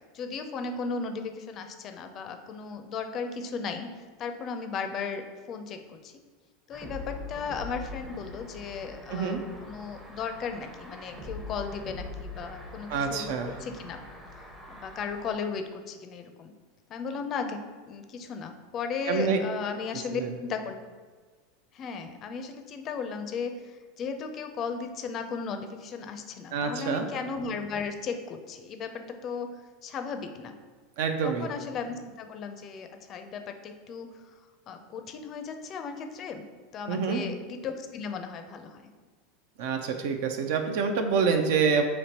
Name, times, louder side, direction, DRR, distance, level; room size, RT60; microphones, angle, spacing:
voice 1, 0.1-3.9 4.2-6.1 6.7-14.0 14.7-16.5 16.9-17.6 17.9-20.7 21.7-29.6 29.8-30.6 31.2-34.1 34.7-36.4 36.7-38.8, left 5 dB, 40° left, 7 dB, 0.4 m, -36 dB
sound 1, 6.7-15.3, left 2 dB, 15° right, 0.6 m, -43 dB
voice 2, 9.1-9.4 12.9-13.5 19.1-19.4 20.1-20.3 26.5-27.1 31.0-31.5 36.9-37.2 39.6-41.8, right 5 dB, 70° right, 5 dB, 0.4 m, -27 dB
4.4 x 2.9 x 2.8 m, 1.5 s
hypercardioid pair, 105°, 0 cm